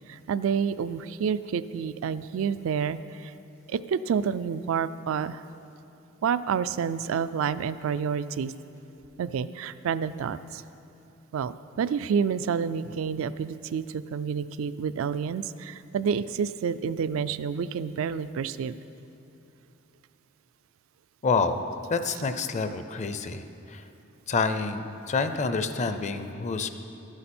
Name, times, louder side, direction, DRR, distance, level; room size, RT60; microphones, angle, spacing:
voice 1, 0.1-3.3 3.7-5.4 6.2-8.5 9.2-10.6 11.3-18.8, right 7 dB, 70° right, 15 dB, 0.3 m, -29 dB
voice 2, 21.2-21.6 21.9-23.8 24.3-26.7, left 4 dB, 35° left, 9 dB, 0.5 m, -28 dB
12.0 x 9.7 x 4.3 m, 2.9 s
head